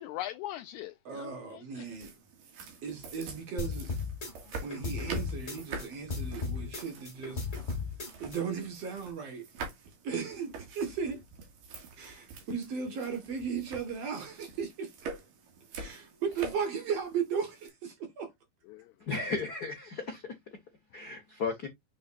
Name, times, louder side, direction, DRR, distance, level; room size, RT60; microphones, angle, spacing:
voice 1, 0.0-1.9 18.7-18.9, left 13 dB, 90° left, 1.6 m, -40 dB
voice 2, 1.0-2.1 2.8-3.9 4.6-7.5 8.2-9.4 10.0-11.2 12.0-14.9 15.7-18.3, right 6 dB, 55° right, 2.4 m, -36 dB
sound 1, 1.9-17.7, right 4 dB, 75° right, 3.7 m, -46 dB
sound 2, 3.6-5.8 6.1-8.4, left 4 dB, 20° left, 2.8 m, -35 dB
voice 3, 19.1-20.3 20.9-21.7, left 4 dB, 55° left, 1.0 m, -34 dB
6.8 x 6.4 x 2.6 m
omnidirectional pair, 3.9 m